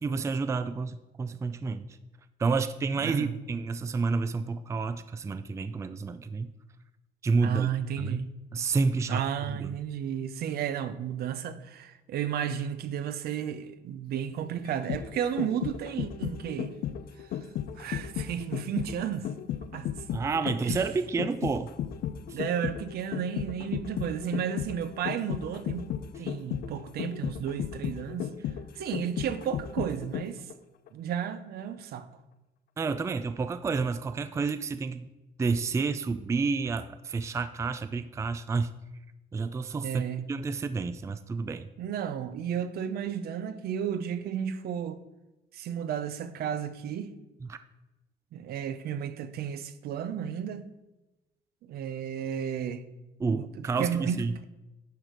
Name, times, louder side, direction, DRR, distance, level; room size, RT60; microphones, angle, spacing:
voice 1, 0.0-2.0 2.4-6.5 7.2-7.7 8.0-8.2 8.5-9.2 9.6-9.7 20.1-21.7 22.3-22.4 32.8-35.1 35.4-38.7 39.3-41.7 47.5-47.6 53.2-54.3, right 4 dB, 15° right, 0.4 m, -30 dB
voice 2, 3.0-3.3 7.4-8.3 9.1-16.7 17.2-17.3 17.8-19.3 19.7-19.9 20.4-20.8 22.3-25.9 26.2-28.3 28.7-30.5 30.9-32.1 39.8-40.3 41.8-45.0 45.5-47.1 48.3-50.7 51.6-52.9 53.2-54.4, right 9 dB, 65° right, 0.8 m, -33 dB
sound 1, 14.6-30.5 30.9-31.0, left 10 dB, 60° left, 0.6 m, -34 dB
10.5 x 4.7 x 5.1 m
cardioid pair, 110°, 17 cm